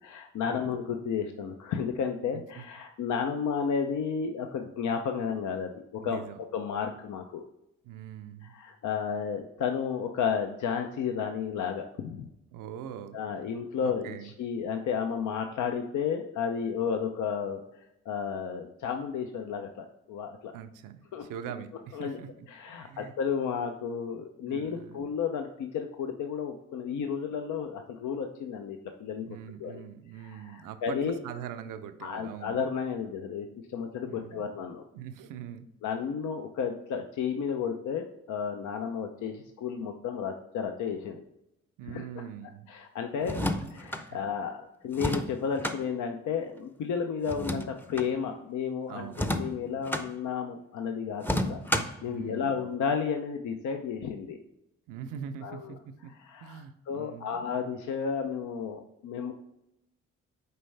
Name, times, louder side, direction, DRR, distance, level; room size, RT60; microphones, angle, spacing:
voice 1, 0.0-6.2 6.5-7.4 8.5-12.3 13.1-17.6 18.1-20.5 21.1-21.2 21.9-22.2 22.5-29.3 29.6-29.8 30.2-31.2 32.0-34.8 35.8-41.2 41.9-42.0 42.7-43.4 43.7-54.4 55.4-55.7 56.2-59.3, left 6 dB, 70° left, 5 dB, 0.6 m, -32 dB
voice 2, 2.3-2.6 6.0-6.4 7.8-8.6 12.5-13.2 13.8-14.3 20.5-22.3 22.7-23.1 24.5-25.1 29.3-32.6 34.1-34.5 34.9-35.7 41.8-42.7 43.2-43.5 44.0-44.2 48.9-49.3 52.1-52.7 54.9-56.1 56.4-57.5, right 9 dB, 80° right, 10 dB, 0.6 m, -42 dB
sound 1, 43.2-44.0 44.9-45.8 47.3-48.1 49.1-50.1 51.2-52.0, left 1 dB, 5° left, 0.6 m, -31 dB
6.7 x 4.3 x 3.3 m, 0.84 s
supercardioid pair, 60°, 31 cm